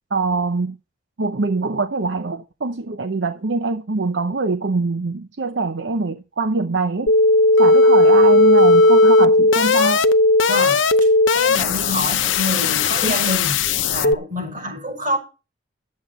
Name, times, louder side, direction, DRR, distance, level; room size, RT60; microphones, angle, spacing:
voice 1, 0.1-0.8 1.2-7.1 7.6-10.1 13.0-13.2, right 3 dB, 70° right, 0.8 m, -23 dB
sound 1, 7.1-14.1, left 2 dB, 85° left, 0.8 m, -15 dB
voice 2, 10.5-15.2, equal, 45° right, 6.2 m, -27 dB
11.5 x 8.4 x 5.4 m
head